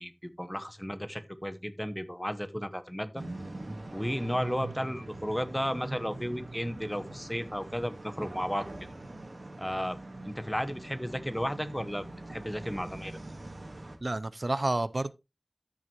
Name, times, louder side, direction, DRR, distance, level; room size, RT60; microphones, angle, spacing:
voice 1, 0.0-3.2 3.9-8.7 9.6-10.0 10.3-13.2, equal, 5° left, 0.9 m, -34 dB
sound 1, 3.2-14.0, right 2 dB, 85° right, 1.8 m, -43 dB
voice 2, 14.0-15.1, right 2 dB, 60° right, 0.4 m, -30 dB
13.5 x 6.2 x 2.9 m
wide cardioid pair, 50°, 0 cm